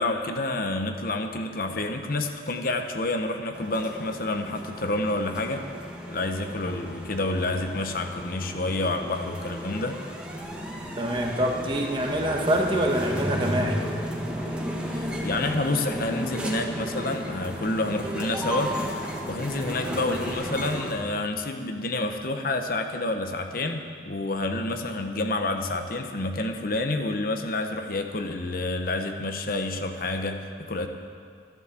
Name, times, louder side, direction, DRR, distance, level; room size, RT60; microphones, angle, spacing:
voice 1, 0.0-5.7 6.1-10.0 14.9-18.8 19.3-30.9, left 2 dB, 50° left, 5 dB, 1.0 m, -29 dB
sound 1, 3.5-20.9, equal, 5° right, 1.5 m, -33 dB
voice 2, 11.0-13.8, right 1 dB, 25° right, 1 dB, 1.4 m, -25 dB
13.5 x 12.0 x 7.5 m, 2.2 s
head